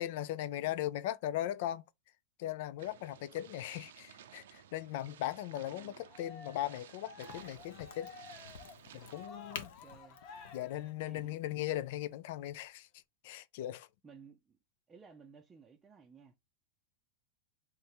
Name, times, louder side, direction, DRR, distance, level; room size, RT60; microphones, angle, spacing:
voice 1, 0.0-1.8 2.4-8.1 8.9-9.7 10.5-12.9 13.2-13.9, left 13 dB, 60° left, 0.4 m, -38 dB
sound 1, 2.8-9.3, right 9 dB, 85° right, 0.6 m, -56 dB
voice 2, 5.6-6.1 9.5-10.2 11.0-11.4 14.0-14.6 14.9-16.4, right 5 dB, 15° right, 0.6 m, -57 dB
Cheering, 6.0-11.5, left 4 dB, 45° left, 1.0 m, -53 dB
Crack, 7.2-12.7, left 7 dB, 80° left, 0.9 m, -51 dB
3.5 x 3.3 x 4.3 m
supercardioid pair, 145°, 0 cm